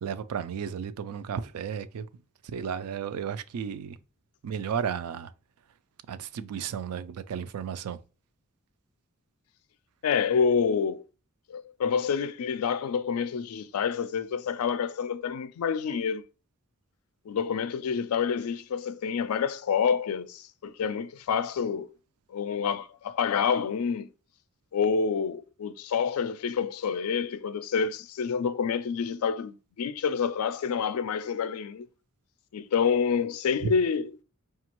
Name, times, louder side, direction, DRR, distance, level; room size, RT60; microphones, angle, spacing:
voice 1, 0.0-2.1 2.5-4.0 4.4-5.3 6.1-8.0 33.6-33.7, right 7 dB, 85° right, 0.3 m, -33 dB
voice 2, 10.0-11.0 11.5-16.2 17.3-21.9 22.3-24.1 24.7-31.9 32.5-34.1, left 6 dB, 75° left, 0.4 m, -28 dB
5.1 x 2.3 x 2.9 m
head